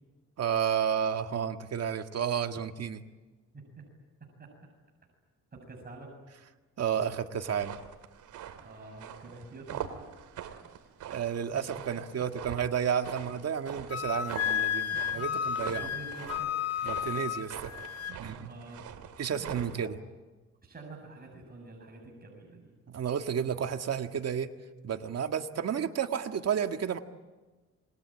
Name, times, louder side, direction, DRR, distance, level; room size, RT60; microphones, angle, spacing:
voice 1, 0.4-3.0 6.8-7.8 11.1-15.9 16.8-17.7 18.1-18.5 19.2-20.0 22.9-24.5 24.8-27.0, right 8 dB, 55° right, 7 dB, 1.8 m, -31 dB
voice 2, 3.5-3.8 4.4-4.5 5.5-6.2 8.6-9.9 11.5-11.6 14.4-16.5 18.0-19.9 20.6-22.7, right 2 dB, 30° right, 0 dB, 7.4 m, -48 dB
sound 1, 7.4-19.9, right 9 dB, 80° right, 2.6 m, -44 dB
Wind instrument woodwind instrument, 13.9-18.2, left 9 dB, 55° left, 1.3 m, -32 dB
27.5 x 22.0 x 8.9 m, 1.2 s
cardioid pair, 90°, 30 cm